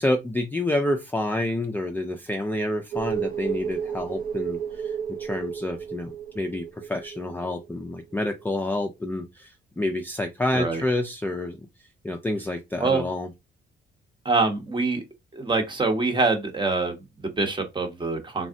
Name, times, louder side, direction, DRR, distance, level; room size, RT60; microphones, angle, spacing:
voice 1, 0.0-11.6 12.0-13.3, left 1 dB, 10° left, 0.4 m, -28 dB
sound 1, 2.9-8.1 8.4-8.5, right 8 dB, 45° right, 0.5 m, -32 dB
voice 2, 14.2-15.0 15.3-18.5, right 3 dB, 25° right, 0.8 m, -25 dB
3.5 x 2.0 x 2.5 m
cardioid pair, 90°, 20 cm